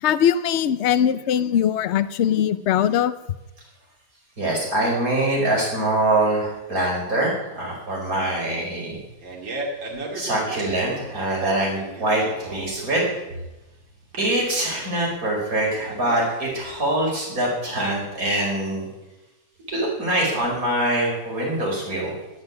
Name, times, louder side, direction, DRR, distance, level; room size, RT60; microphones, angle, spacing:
voice 1, 0.0-3.1, left 9 dB, 85° left, 13 dB, 0.6 m, -21 dB
voice 2, 4.4-9.0 10.1-13.1 14.2-18.9 19.7-22.2, right 1 dB, 50° right, -2 dB, 5.5 m, -24 dB
Fart, 8.9-16.9, right 2 dB, 85° right, 3.2 m, -35 dB
13.0 x 9.8 x 8.4 m, 1.0 s
omnidirectional pair, 2.0 m